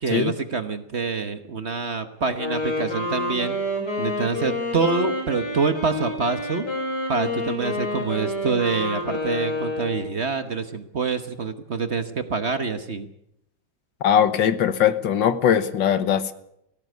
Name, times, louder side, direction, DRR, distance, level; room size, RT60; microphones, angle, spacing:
voice 1, 0.0-3.6 4.0-6.6 7.1-13.1, right 4 dB, 40° right, 9 dB, 1.3 m, -26 dB
Wind instrument woodwind instrument, 2.3-10.2, left 1 dB, 65° left, 8.2 m, -28 dB
voice 2, 14.0-16.3, left 9 dB, 85° left, 13 dB, 1.9 m, -20 dB
19.0 x 16.0 x 9.4 m, 0.79 s
omnidirectional pair, 2.0 m